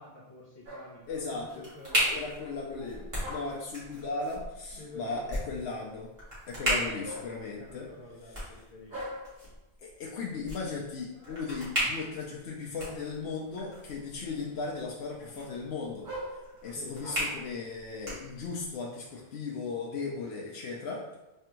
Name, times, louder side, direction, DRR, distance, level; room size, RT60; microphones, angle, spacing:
voice 1, 0.0-2.3 4.8-5.3 6.5-9.1 16.6-17.0, left 2 dB, 35° left, -5 dB, 0.5 m, -49 dB
sound 1, 0.6-1.1 1.8-2.4 2.8-3.7 4.7-5.5 7.0-8.0 8.9-9.5 10.9-11.7 12.8-13.3 13.8-14.7 15.1-17.4 18.1-19.2, equal, 55° right, 1.3 m, -45 dB
sound 2, 1.0-18.8, equal, 30° right, 1.7 m, -37 dB
voice 2, 1.1-1.6 2.1-6.1 6.5-7.9 9.8-16.1 16.6-21.2, left 4 dB, 90° left, -3 dB, 0.9 m, -37 dB
3.4 x 3.4 x 2.9 m, 0.98 s
omnidirectional pair, 1.1 m